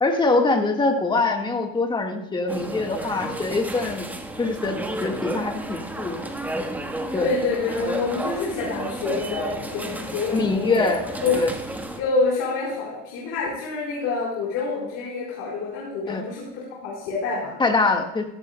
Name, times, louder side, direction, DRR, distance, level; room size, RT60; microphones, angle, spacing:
voice 1, 0.0-4.1 4.4-6.2 7.1-7.3 10.3-11.0 11.3-11.5 16.1-16.2 17.6-18.2, left 3 dB, 15° left, 4 dB, 1.5 m, -23 dB
sound 1, 2.5-12.0, right 1 dB, 5° right, 1.3 m, -32 dB
voice 2, 7.2-11.4 12.0-17.5, left 4 dB, 65° left, -5 dB, 4.1 m, -27 dB
14.5 x 14.0 x 2.2 m, 0.86 s
supercardioid pair, 115°, 29 cm